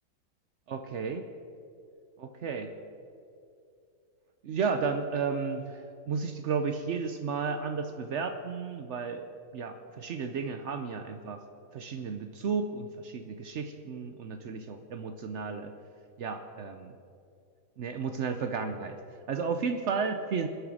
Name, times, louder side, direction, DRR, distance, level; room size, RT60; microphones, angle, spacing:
voice 1, 0.7-1.3 2.2-2.7 4.4-9.3 9.5-11.4 11.7-15.7 16.2-17.0 17.8-19.0 19.3-20.5, right 5 dB, 85° right, 7 dB, 0.6 m, -33 dB
21.0 x 8.1 x 4.9 m, 2.6 s
omnidirectional pair, 2.1 m